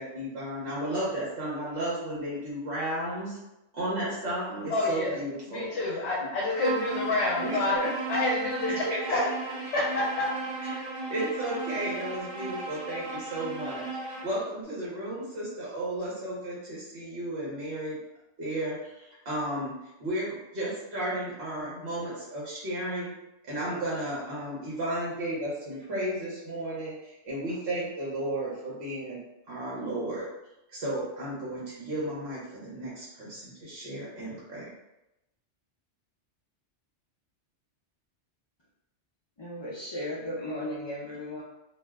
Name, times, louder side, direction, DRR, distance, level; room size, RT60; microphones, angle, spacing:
voice 1, 0.0-3.4 3.7-5.7 7.4-7.9 8.6-9.3 10.6-10.8 11.1-18.0 18.4-23.1 23.4-29.2 29.5-30.3 30.7-34.7, right 1 dB, 70° right, -7 dB, 1.1 m, -33 dB
voice 2, 4.7-5.2 5.5-7.8 8.1-8.7 9.7-10.3, left 2 dB, 70° left, -5 dB, 0.9 m, -28 dB
Bowed string instrument, 6.5-14.4, right 3 dB, 40° right, 0.9 m, -35 dB
voice 3, 39.4-41.4, left 1 dB, 45° left, -6 dB, 0.3 m, -35 dB
2.5 x 2.0 x 3.4 m, 0.92 s
omnidirectional pair, 1.2 m